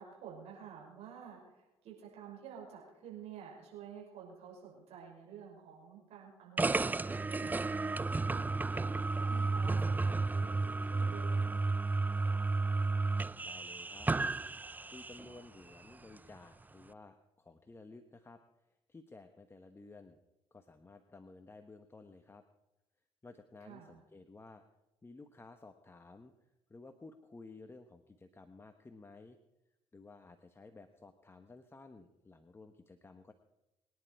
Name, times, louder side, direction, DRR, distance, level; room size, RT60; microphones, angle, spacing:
voice 1, 0.0-11.7 23.6-24.0, right 7 dB, 65° right, -2 dB, 6.0 m, -51 dB
sound 1, 6.6-15.3, right 3 dB, 15° right, 0.4 m, -32 dB
voice 2, 13.4-14.1 14.9-20.2 20.5-22.4 23.2-24.6 25.0-26.3 26.7-29.4 29.9-33.3, left 3 dB, 20° left, 7 dB, 1.3 m, -54 dB
23.0 x 10.5 x 4.8 m, 0.95 s
supercardioid pair, 70°, 11 cm